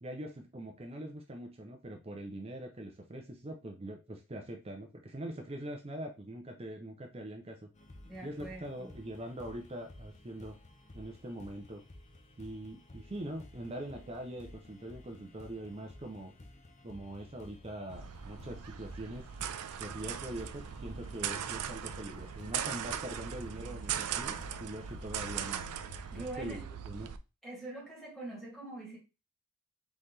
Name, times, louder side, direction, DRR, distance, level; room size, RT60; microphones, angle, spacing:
voice 1, 0.0-7.7 8.2-10.6 10.9-11.8 12.4-16.3 16.8-19.3 19.8-25.7 26.1-26.6 26.9-27.1, right 1 dB, 25° right, 3 dB, 0.6 m, -43 dB
sound 1, 7.7-26.3, left 1 dB, 30° left, 0.7 m, -54 dB
voice 2, 8.1-8.9 26.1-26.7 27.4-29.0, right 2 dB, ahead, -4 dB, 2.1 m, -44 dB
sound 2, 17.9-27.2, right 8 dB, 90° right, 0.4 m, -39 dB
4.1 x 3.9 x 3.2 m, 0.29 s
head